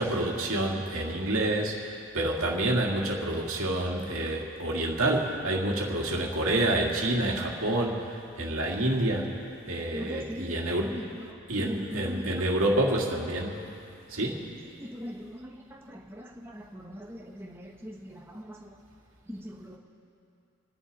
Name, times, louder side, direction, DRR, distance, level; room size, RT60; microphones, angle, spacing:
voice 1, 0.0-11.0 11.5-13.6 14.1-14.5, right 1 dB, 90° right, -1 dB, 2.3 m, -28 dB
voice 2, 9.9-11.3 11.6-12.4 14.8-18.7 19.3-19.8, equal, 10° right, -1 dB, 1.0 m, -41 dB
29.5 x 10.5 x 4.1 m, 2.6 s
head